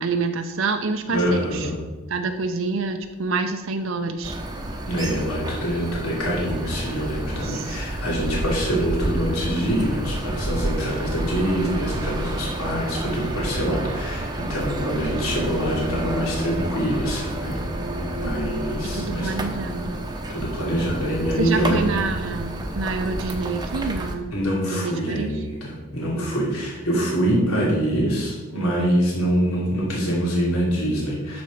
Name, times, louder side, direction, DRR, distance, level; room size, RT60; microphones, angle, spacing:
voice 1, 0.0-1.7 2.1-4.4 7.4-7.8 18.9-20.0 21.4-24.3 24.6-25.4 26.1-26.5, right 4 dB, 60° right, 6 dB, 0.6 m, -27 dB
voice 2, 1.1-1.8 4.9-17.6 18.2-19.4 20.3-21.8 24.3-31.4, equal, 85° left, -4 dB, 3.1 m, -25 dB
sound 1, 4.2-24.1, right 1 dB, 20° right, 0.8 m, -30 dB
12.5 x 4.3 x 5.0 m, 1.2 s
head